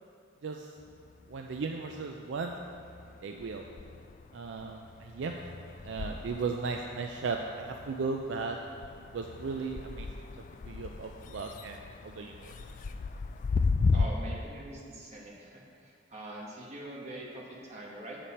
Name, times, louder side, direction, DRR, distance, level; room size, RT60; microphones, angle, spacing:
sound 1, 0.8-2.0 2.4-14.1, left 4 dB, 40° left, 0.3 m, -36 dB
voice 1, 1.3-2.5 3.2-3.6 4.3-5.3 5.8-8.6 9.1-10.1 10.7-11.8 12.0-12.5, right 4 dB, 65° right, 3 dB, 0.4 m, -36 dB
voice 2, 13.9-18.2, right 1 dB, 35° right, -3 dB, 1.2 m, -43 dB
7.5 x 6.8 x 4.2 m, 2.4 s
head